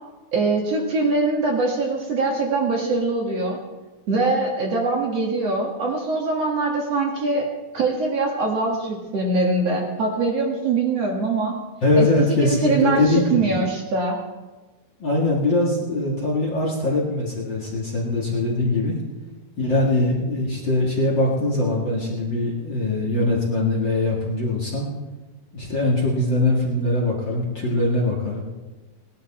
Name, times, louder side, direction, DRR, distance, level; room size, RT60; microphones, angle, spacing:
voice 1, 0.3-3.6 4.1-7.5 7.7-11.5 12.0-14.2, right 3 dB, 50° right, -1 dB, 2.4 m, -23 dB
voice 2, 11.8-13.5 15.0-19.0 19.6-24.9 25.5-28.4, left 2 dB, 40° left, -3 dB, 2.2 m, -22 dB
18.5 x 11.5 x 4.3 m, 1.2 s
omnidirectional pair, 4.1 m